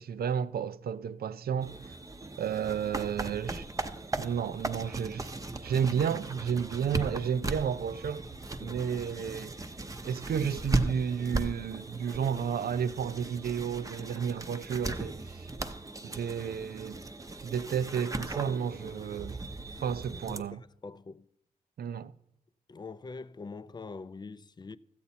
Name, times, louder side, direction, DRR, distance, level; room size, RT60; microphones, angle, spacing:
voice 1, 0.0-1.9 2.4-3.7 4.2-5.3 5.6-8.2 8.6-9.5 10.0-15.5 16.0-17.0 17.4-19.4 19.8-20.6 21.8-22.1, right 7 dB, 85° right, 0.5 m, -32 dB
sound 1, 1.6-20.4, right 2 dB, 20° right, 0.7 m, -37 dB
voice 2, 8.6-8.9 18.8-19.0 19.7-19.8 20.3-21.3 22.7-24.8, left 4 dB, 30° left, 0.4 m, -44 dB
13.5 x 8.1 x 4.2 m
wide cardioid pair, 95°, 15 cm